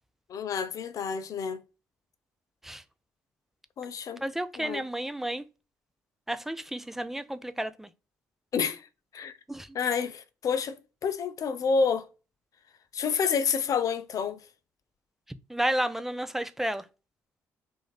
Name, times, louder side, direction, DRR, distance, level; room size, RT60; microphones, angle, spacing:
voice 1, 0.3-1.6 3.8-4.2 4.6-4.8 8.5-8.8 9.1-9.3 9.7-10.8 11.0-12.1 12.9-14.4, left 6 dB, 50° left, 0.5 m, -28 dB
voice 2, 4.2-5.4 6.3-7.9 9.5-9.7 15.5-16.8, right 1 dB, 5° right, 0.4 m, -31 dB
2.9 x 2.6 x 4.1 m
figure-of-eight pair, 45°, 8 cm